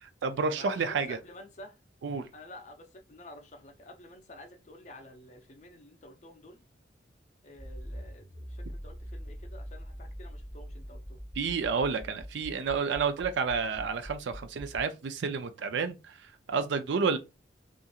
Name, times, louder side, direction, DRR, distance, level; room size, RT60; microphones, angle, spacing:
voice 1, 0.0-1.2 2.0-2.3 11.4-17.2, right 5 dB, 70° right, 0.4 m, -30 dB
voice 2, 0.5-1.8 2.3-6.6 7.4-11.2, left 1 dB, 40° left, 0.5 m, -50 dB
Accelerating revving vroom, 7.5-14.8, equal, 20° right, 0.5 m, -43 dB
2.8 x 2.4 x 2.3 m
head